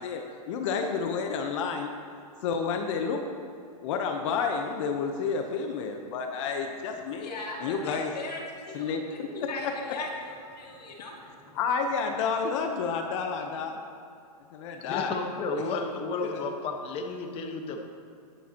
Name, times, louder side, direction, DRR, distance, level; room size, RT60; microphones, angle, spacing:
voice 1, 0.0-1.9 2.4-3.2 3.8-7.3 7.6-8.1 8.7-9.7 11.5-13.8 14.5-15.1 16.3-16.4, left 5 dB, 50° left, 4 dB, 0.9 m, -30 dB
voice 2, 7.2-11.5, left 2 dB, 85° left, -2 dB, 2.4 m, -39 dB
voice 3, 14.8-17.8, left 3 dB, 30° left, 3 dB, 1.2 m, -32 dB
19.5 x 7.1 x 2.9 m, 2.4 s
hypercardioid pair, 140°, 20 cm